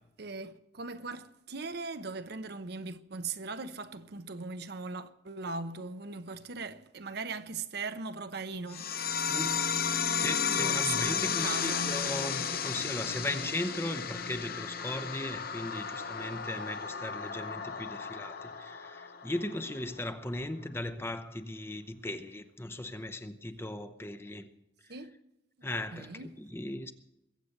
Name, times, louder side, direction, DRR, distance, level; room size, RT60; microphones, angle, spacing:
voice 1, 0.2-9.4 10.5-12.0 24.9-25.1 25.6-26.3, right 4 dB, 60° right, 0.8 m, -39 dB
sound 1, 8.7-19.7, left 6 dB, 55° left, 1.0 m, -33 dB
voice 2, 9.3-9.7 10.2-24.5 25.6-26.9, left 1 dB, 15° left, 0.8 m, -37 dB
21.5 x 8.3 x 6.6 m
head